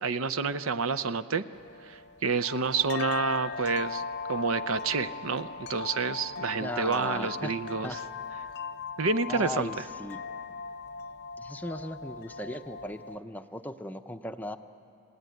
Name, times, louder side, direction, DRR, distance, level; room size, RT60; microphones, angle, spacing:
voice 1, 0.0-1.4 1.8-4.0 4.3-7.9 9.0-9.7, right 4 dB, 70° right, 13 dB, 0.7 m, -29 dB
sound 1, 1.5-13.2, left 5 dB, 50° left, 0.7 m, -39 dB
voice 2, 6.6-7.6 7.8-8.0 9.3-10.2 11.4-14.6, left 1 dB, 10° left, 7 dB, 0.6 m, -37 dB
29.5 x 17.0 x 9.3 m, 2.6 s
head